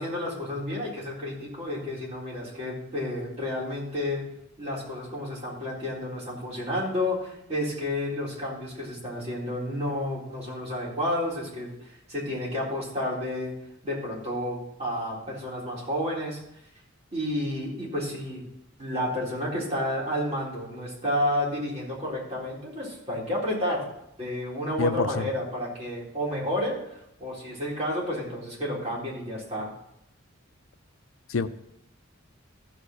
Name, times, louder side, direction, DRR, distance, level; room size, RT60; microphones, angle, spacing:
voice 1, 0.0-4.2 4.6-11.7 12.1-13.5 13.8-16.4 17.1-18.5 18.8-23.9 24.2-26.8 27.2-29.7, left 1 dB, 35° right, -5 dB, 4.0 m, -31 dB
voice 2, 24.8-25.3 31.3-31.5, left 4 dB, 90° left, 11 dB, 0.6 m, -26 dB
14.0 x 5.1 x 6.4 m, 0.79 s
head